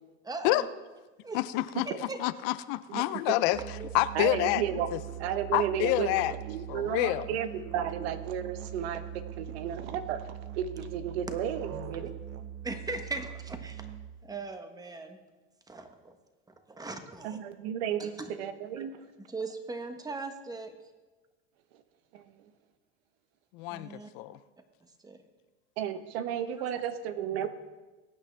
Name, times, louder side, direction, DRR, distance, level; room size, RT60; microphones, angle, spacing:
voice 1, 0.2-0.7 1.2-1.4 1.8-2.2 3.5-3.9 11.7-11.8 12.6-13.9 14.2-15.2 15.7-16.2 16.5-17.4 18.0-18.3 19.2-20.7 23.7-24.1 24.8-25.2, right 3 dB, 10° right, 7 dB, 1.3 m, -39 dB
voice 2, 1.3-1.9 2.2-3.6 3.9-4.6 4.9-5.0 5.5-6.3 6.7-7.2 23.5-24.4, left 17 dB, 65° left, 15 dB, 0.6 m, -28 dB
voice 3, 2.9-3.4 4.1-4.9 5.2-12.1 17.2-19.0 22.1-22.2 25.8-27.5, right 9 dB, 80° right, 10 dB, 1.2 m, -33 dB
Musical instrument, 3.5-14.3, right 11 dB, 50° right, 0.8 m, -42 dB
21.5 x 9.0 x 3.4 m, 1.2 s
supercardioid pair, 115°, 31 cm